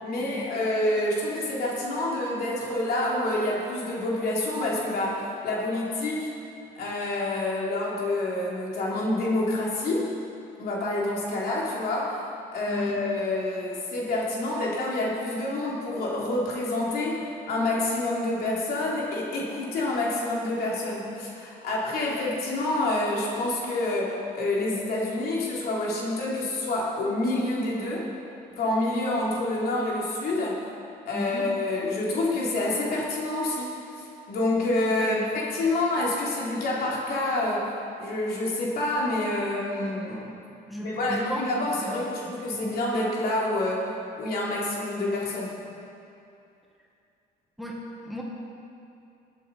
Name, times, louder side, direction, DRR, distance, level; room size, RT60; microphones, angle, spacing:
voice 1, 0.0-6.3 6.7-10.1 10.6-12.2 12.5-28.1 28.6-30.6 31.1-37.7 38.0-40.3 40.8-43.8 44.2-45.5, left 2 dB, 65° left, -4 dB, 3.0 m, -27 dB
voice 2, 31.1-31.5 35.0-35.3 40.7-41.4 41.7-42.0 42.2-42.8 47.6-47.8 48.0-48.2, equal, ahead, -3 dB, 1.8 m, -34 dB
19.0 x 8.2 x 4.2 m, 2.6 s
cardioid pair, 110°, 17 cm